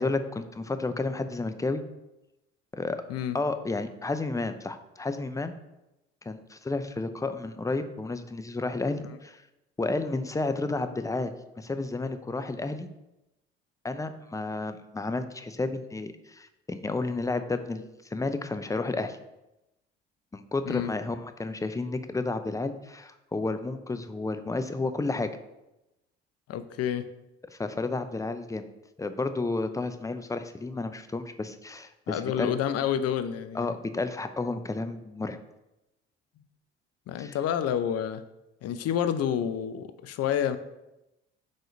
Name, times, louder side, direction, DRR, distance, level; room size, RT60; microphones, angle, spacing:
voice 1, 0.0-1.8 2.7-3.0 3.3-5.5 6.2-9.4 9.8-12.9 13.8-17.8 18.1-19.2 20.3-25.3 27.5-28.7 29.0-32.5 33.5-35.4 37.2-37.4, left 3 dB, 10° left, 9 dB, 0.5 m, -31 dB
voice 2, 26.5-27.1 32.1-33.7 37.1-38.2 38.6-40.6, left 9 dB, 50° left, 11 dB, 0.6 m, -29 dB
5.1 x 3.8 x 5.1 m, 0.94 s
hypercardioid pair, 60°, 31 cm